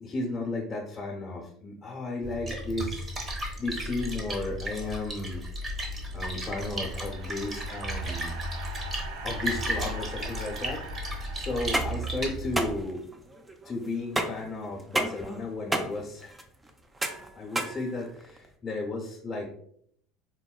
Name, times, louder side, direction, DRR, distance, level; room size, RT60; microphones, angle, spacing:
voice 1, 0.0-3.1 3.6-5.4 6.1-8.3 9.2-13.0 13.6-16.4 17.3-19.5, left 2 dB, 25° left, -4 dB, 0.7 m, -34 dB
Splash splatter, 2.2-12.8, right 1 dB, 30° right, 0.8 m, -34 dB
sound 1, 6.2-12.5, right 2 dB, 85° right, 0.4 m, -43 dB
sound 2, 11.5-18.5, right 1 dB, 15° right, 0.4 m, -32 dB
4.3 x 2.1 x 2.3 m, 0.66 s
supercardioid pair, 110°, 0 cm